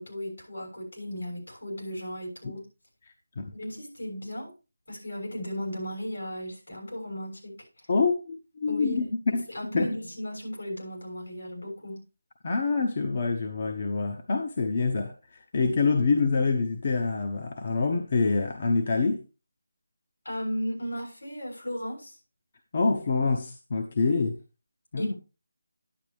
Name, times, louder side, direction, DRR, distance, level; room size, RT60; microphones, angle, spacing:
voice 1, 0.0-2.6 3.5-4.5 4.9-7.9 8.7-12.0 20.2-22.2 25.0-25.2, equal, 80° left, 6.7 m, -36 dB
voice 2, 7.9-9.5 9.7-9.9 12.4-19.2 22.7-24.4 24.9-25.1, left 4 dB, 40° left, 0.8 m, -26 dB
10.0 x 8.6 x 3.4 m
figure-of-eight pair, 170°, 0 cm